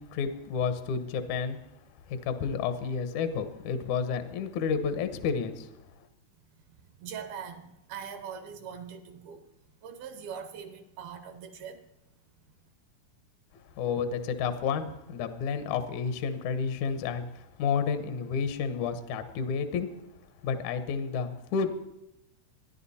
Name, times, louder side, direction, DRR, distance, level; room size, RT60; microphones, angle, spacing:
voice 1, 0.0-1.6 2.1-5.7 13.5-19.9 20.4-21.8, left 6 dB, 80° left, 9 dB, 1.7 m, -31 dB
voice 2, 7.0-9.5 9.8-11.8, right 7 dB, 75° right, 9 dB, 2.5 m, -42 dB
26.5 x 10.5 x 4.2 m, 0.88 s
omnidirectional pair, 4.9 m